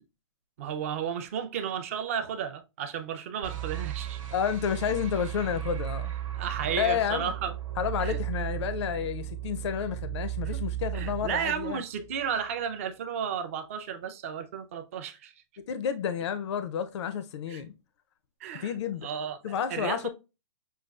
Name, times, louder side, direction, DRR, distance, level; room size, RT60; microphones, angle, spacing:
voice 1, 0.6-4.2 6.4-7.5 8.0-8.2 10.5-10.6 10.9-15.3 17.5-17.6 18.4-20.1, right 8 dB, 25° right, 0.3 m, -33 dB
sound 1, 3.4-12.5, right 13 dB, 85° right, 1.0 m, -35 dB
voice 2, 4.3-6.1 6.7-7.3 7.8-11.8 15.7-17.7 18.6-19.1 19.4-20.1, left 8 dB, 60° left, 0.4 m, -30 dB
6.1 x 2.3 x 2.2 m
hypercardioid pair, 170°, 17 cm